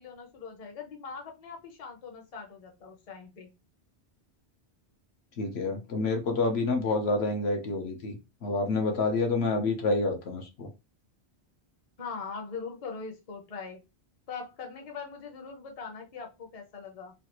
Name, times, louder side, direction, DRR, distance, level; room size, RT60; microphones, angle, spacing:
voice 1, 0.0-3.5 12.0-13.8 14.3-17.1, left 5 dB, 40° left, 2 dB, 0.7 m, -41 dB
voice 2, 5.4-10.7, left 3 dB, 70° left, 3 dB, 1.0 m, -28 dB
3.2 x 2.3 x 2.9 m, 0.26 s
omnidirectional pair, 1.1 m